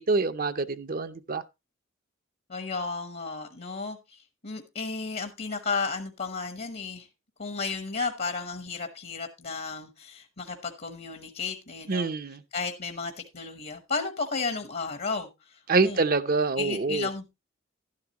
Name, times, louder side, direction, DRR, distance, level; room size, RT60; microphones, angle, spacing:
voice 1, 0.0-1.4 11.9-12.4 15.7-17.1, right 3 dB, 50° right, 0.7 m, -26 dB
voice 2, 2.5-7.1 7.4-12.1 12.5-16.0 16.6-17.2, left 4 dB, 55° left, 1.1 m, -33 dB
12.0 x 10.5 x 2.9 m
head